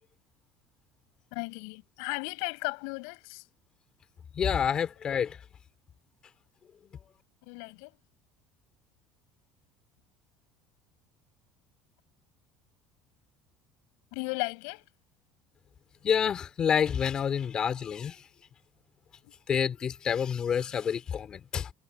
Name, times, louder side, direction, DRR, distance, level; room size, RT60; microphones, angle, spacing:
voice 1, 1.3-3.4 7.4-7.9 14.1-14.8 19.2-19.3, left 36 dB, 80° left, 7.2 m, -35 dB
voice 2, 4.3-5.4 6.8-6.9 16.0-18.3 19.5-21.7, left 7 dB, 35° left, 2.6 m, -28 dB
supercardioid pair, 110°, 2 cm